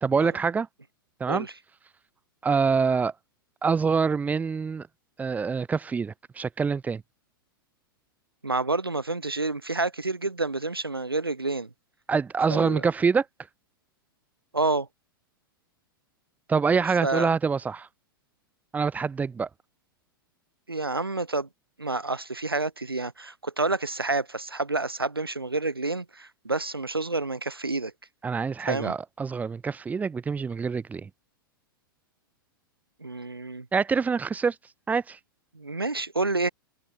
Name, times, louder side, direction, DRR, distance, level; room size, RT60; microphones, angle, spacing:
voice 1, 0.0-0.7 1.2-1.5 2.4-3.1 3.6-4.9 5.2-7.0 12.1-13.2 16.5-17.9 18.7-19.5 28.2-31.1 33.7-34.6 34.9-35.2, right 5 dB, 15° right, 0.9 m, -25 dB
voice 2, 8.4-11.7 12.5-12.8 14.5-14.9 17.0-17.3 20.7-21.5 21.8-27.9 28.7-28.9 33.0-33.7 35.5-36.5, right 3 dB, 85° right, 2.1 m, -29 dB
figure-of-eight pair, 95°, 12 cm